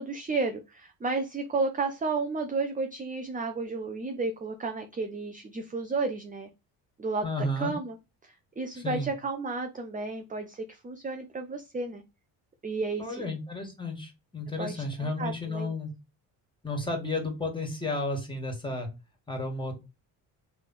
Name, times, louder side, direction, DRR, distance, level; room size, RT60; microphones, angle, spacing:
voice 1, 0.0-6.5 7.0-7.3 7.6-7.9 8.2-12.0 12.6-13.3 14.6-15.7, right 3 dB, 15° right, 6 dB, 0.6 m, -32 dB
voice 2, 7.2-7.7 8.7-9.1 13.0-15.9 16.6-18.9 19.3-19.7, left 2 dB, 10° left, 2 dB, 2.0 m, -32 dB
3.4 x 3.3 x 4.1 m, 0.26 s
supercardioid pair, 75°, 47 cm